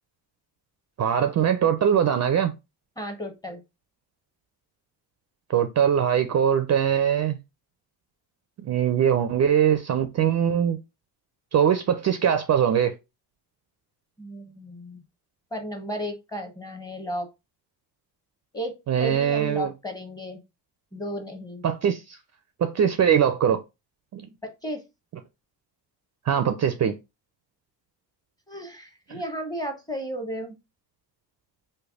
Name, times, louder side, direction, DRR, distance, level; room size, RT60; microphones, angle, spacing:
voice 1, 1.0-2.5 5.5-7.4 8.6-10.8 11.5-13.0 18.9-19.7 21.6-22.2 22.6-23.6 24.1-24.3 26.3-26.9 29.1-29.2, right 8 dB, 40° right, 0.4 m, -22 dB
voice 2, 3.0-3.6 14.2-15.0 15.5-17.3 18.5-20.4 20.9-21.6 24.4-24.8 28.5-30.5, equal, 10° left, 0.8 m, -34 dB
3.3 x 2.2 x 3.5 m
cardioid pair, 75°, 44 cm